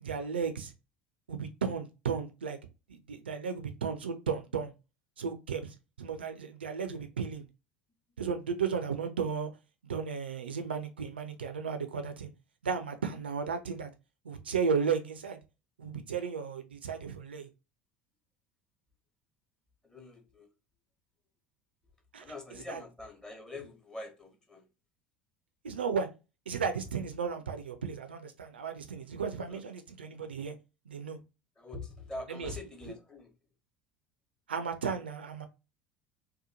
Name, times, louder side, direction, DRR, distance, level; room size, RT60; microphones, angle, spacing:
voice 1, 0.0-0.7 1.3-2.6 2.9-4.7 5.2-7.5 8.2-9.5 9.8-12.3 12.6-13.9 14.2-15.4 15.8-17.5 22.1-22.2 22.7-22.8 25.6-26.1 26.5-30.5 30.9-31.2 32.3-32.5 34.5-35.5, right 6 dB, 75° right, 0.4 m, -34 dB
voice 2, 19.8-20.5 22.2-24.7 29.4-29.6 31.6-33.3, left 2 dB, 10° left, 0.9 m, -44 dB
2.8 x 2.2 x 2.5 m
figure-of-eight pair, 65°, 6 cm